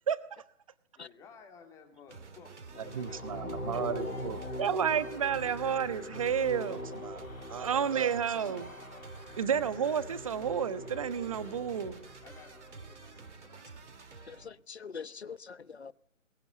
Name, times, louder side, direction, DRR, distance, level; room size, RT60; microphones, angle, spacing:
voice 1, 0.9-4.9 12.2-13.7, left 6 dB, 10° left, 2.5 m, -57 dB
sound 1, 2.1-14.5, right 4 dB, 60° right, 2.7 m, -50 dB
sound 2, 2.7-12.8, left 1 dB, 85° left, 2.9 m, -42 dB
voice 2, 2.9-7.2 7.5-8.7 9.4-12.0, right 8 dB, 25° right, 1.2 m, -31 dB
voice 3, 14.2-15.9, left 6 dB, 55° left, 1.2 m, -44 dB
22.5 x 22.0 x 9.5 m
figure-of-eight pair, 150°, 39 cm